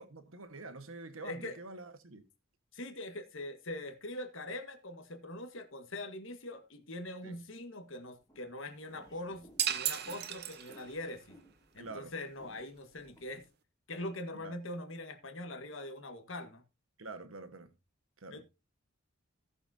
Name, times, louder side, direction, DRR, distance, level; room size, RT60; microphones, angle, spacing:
voice 1, 0.0-2.3 7.2-7.3 11.8-12.1 14.3-14.6 17.0-17.7 18.2-18.4, right 3 dB, 85° right, 1.5 m, -47 dB
voice 2, 1.2-1.5 2.7-11.4 11.7-13.4 13.9-16.6 18.3-18.4, left 1 dB, 70° left, 1.6 m, -42 dB
sound 1, 8.2-13.5, equal, 20° left, 2.8 m, -61 dB
sound 2, 9.6-11.1, right 10 dB, 50° right, 0.9 m, -34 dB
17.5 x 7.0 x 2.8 m
head